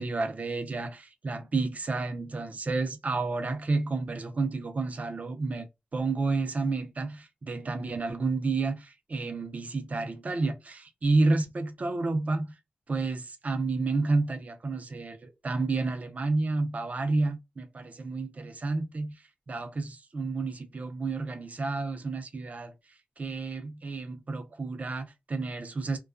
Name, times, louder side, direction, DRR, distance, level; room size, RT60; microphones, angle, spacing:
voice 1, 0.0-12.5 12.9-22.7 23.2-26.0, right 3 dB, 50° right, 0.6 m, -30 dB
2.3 x 2.3 x 2.4 m
wide cardioid pair, 80°, 3 cm